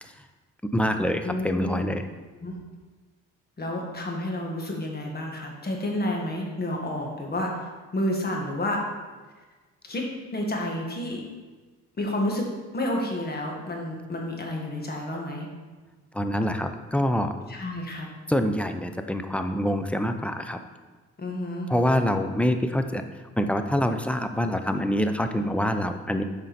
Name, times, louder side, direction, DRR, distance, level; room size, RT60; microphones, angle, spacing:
voice 1, 0.7-2.1 16.1-17.3 18.3-20.6 21.7-23.0 23.4-26.2, equal, 5° left, 7 dB, 0.5 m, -25 dB
voice 2, 1.2-1.9 2.4-2.6 3.6-8.8 9.9-10.0 10.3-11.2 12.0-12.5 12.7-15.5 17.5-18.1 21.2-21.7, left 1 dB, 30° left, 0 dB, 1.7 m, -30 dB
7.4 x 5.3 x 4.2 m, 1.3 s
cardioid pair, 90°, 30 cm